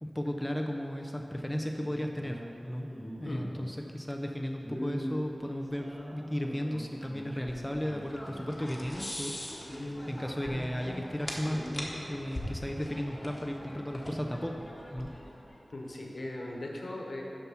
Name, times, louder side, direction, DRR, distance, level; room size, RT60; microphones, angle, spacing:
voice 1, 0.0-2.9 3.2-9.3 9.7-14.6 14.9-15.1, equal, 5° left, 2 dB, 0.5 m, -35 dB
sound 1, 1.8-3.7 4.6-8.6 9.0-9.1 9.4-11.0 11.3-12.0, equal, 20° right, 1.7 m, -42 dB
sound 2, 7.0-15.6, left 1 dB, 25° left, 1.2 m, -42 dB
voice 2, 15.7-17.2, left 1 dB, 60° left, -1 dB, 1.1 m, -38 dB
6.8 x 5.9 x 5.9 m, 2.9 s
wide cardioid pair, 85°, 0 cm